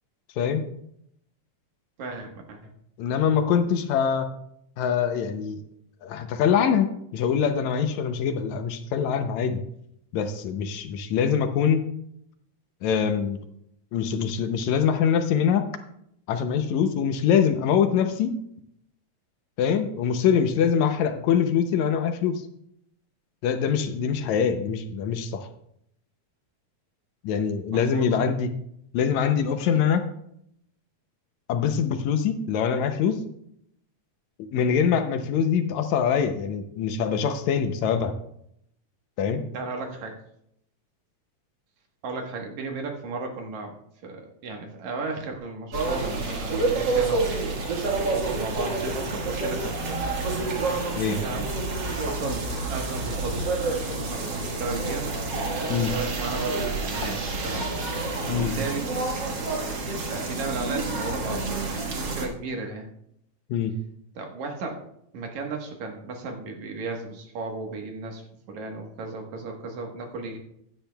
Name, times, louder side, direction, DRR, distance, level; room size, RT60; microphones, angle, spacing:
voice 1, 2.0-2.6 27.7-28.1 39.5-40.2 42.0-43.8 44.0-47.3 47.7-50.1 51.2-51.5 52.0-53.5 53.9-55.1 55.9-57.7 58.3-58.9 59.8-62.9 64.2-64.9 65.1-68.2 68.5-70.4, right 3 dB, 70° right, 2 dB, 2.7 m, -35 dB
voice 2, 3.0-4.3 4.8-5.6 6.0-9.6 10.1-11.8 12.8-13.4 13.9-15.7 16.3-18.4 19.6-22.5 23.4-25.5 27.2-28.5 28.9-30.1 31.5-33.2 34.5-38.1 39.2-39.4 50.9-51.2 55.7-55.9 58.3-58.5 63.5-63.7, left 7 dB, 75° left, 8 dB, 2.0 m, -24 dB
sound 1, 45.7-62.3, right 3 dB, 45° right, 2.0 m, -28 dB
15.5 x 10.5 x 2.3 m, 0.74 s
omnidirectional pair, 3.4 m